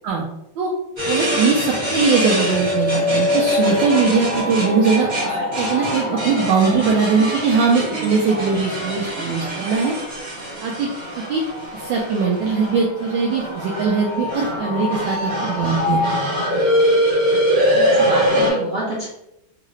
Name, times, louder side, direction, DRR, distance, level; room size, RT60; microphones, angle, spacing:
sound 1, 1.0-18.5, equal, 25° right, 1.2 m, -22 dB
voice 1, 1.1-9.9 10.6-10.9 11.3-11.4 11.7-16.2, right 5 dB, 75° right, -2 dB, 1.2 m, -20 dB
voice 2, 17.6-19.1, right 1 dB, 45° right, -7 dB, 0.8 m, -27 dB
3.7 x 2.4 x 3.1 m, 0.81 s
omnidirectional pair, 2.2 m